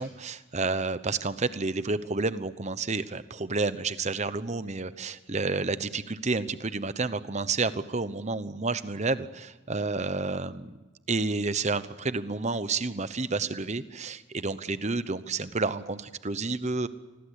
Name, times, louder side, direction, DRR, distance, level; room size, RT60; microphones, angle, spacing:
voice 1, 0.0-10.8 11.1-16.9, right 3 dB, 35° right, 13 dB, 0.9 m, -30 dB
28.0 x 21.0 x 8.2 m, 1.2 s
head